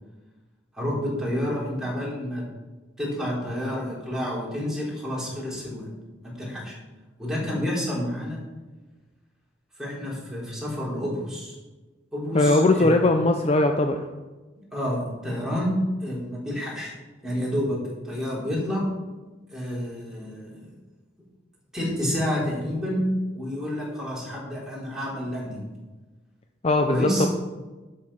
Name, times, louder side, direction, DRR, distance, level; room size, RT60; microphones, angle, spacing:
voice 1, 0.7-2.4 3.0-5.9 6.2-6.8 7.2-8.4 9.8-11.5 12.1-12.9 14.7-16.9 17.2-18.8 19.5-20.7 21.7-25.7 26.9-27.3, equal, 5° right, -5 dB, 3.8 m, -29 dB
voice 2, 12.3-14.0 26.6-27.3, left 2 dB, 35° left, 5 dB, 0.6 m, -20 dB
11.0 x 6.7 x 5.6 m, 1.2 s
head